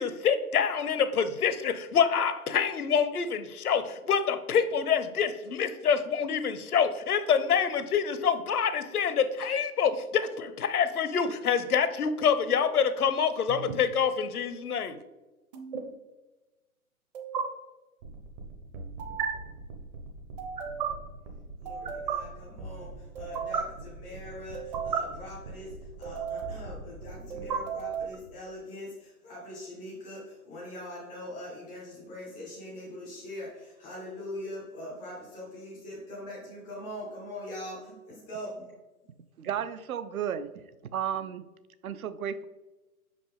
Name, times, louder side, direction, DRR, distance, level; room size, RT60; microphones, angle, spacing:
voice 1, 0.0-15.0, left 7 dB, 80° left, 12 dB, 0.7 m, -26 dB
sound 1, 13.5-13.8 15.5-15.8 17.1-17.4 19.0-19.3 20.4-20.9 21.7-22.2 23.2-23.6 24.5-25.0 26.0-26.6 27.3-28.2, right 7 dB, 30° right, 0.7 m, -33 dB
sound 2, 18.0-28.4, right 2 dB, 55° right, 1.2 m, -44 dB
voice 2, 21.6-38.8, left 1 dB, ahead, -4 dB, 0.3 m, -42 dB
voice 3, 39.4-40.6 40.9-41.5 41.8-42.5, right 9 dB, 70° right, 13 dB, 0.6 m, -33 dB
5.7 x 5.0 x 3.4 m, 1.1 s
figure-of-eight pair, 130°, 45 cm